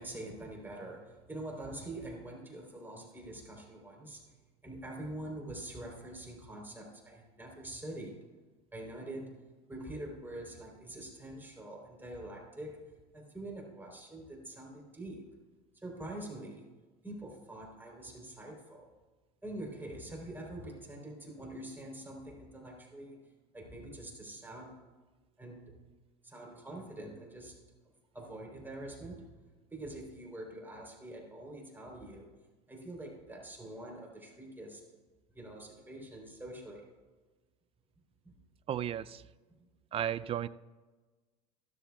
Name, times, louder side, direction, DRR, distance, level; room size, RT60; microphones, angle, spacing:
voice 1, 0.0-4.3 4.6-8.3 8.7-9.4 9.7-15.2 15.8-16.7 17.0-18.9 19.4-23.2 23.5-24.7 25.4-25.8 26.2-27.6 28.1-29.4 29.7-32.3 32.7-34.8 35.3-36.9 38.3-38.4, right 1 dB, 10° right, 3.6 m, -45 dB
voice 2, 38.7-39.2 39.9-40.5, right 10 dB, 30° right, 0.4 m, -34 dB
15.0 x 13.0 x 2.3 m
supercardioid pair, 105°, 20 cm